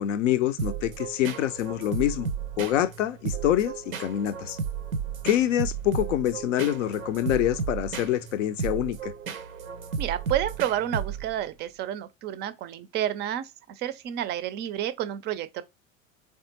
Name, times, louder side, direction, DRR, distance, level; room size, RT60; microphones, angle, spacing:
voice 1, 0.0-2.3 2.6-4.6 5.2-9.1, left 12 dB, 65° left, 0.5 m, -26 dB
sound 1, 0.6-11.5, right 6 dB, 85° right, 0.6 m, -34 dB
voice 2, 10.0-13.5 13.8-15.6, right 11 dB, 25° right, 0.4 m, -30 dB
3.5 x 3.4 x 2.8 m
figure-of-eight pair, 80°, 40 cm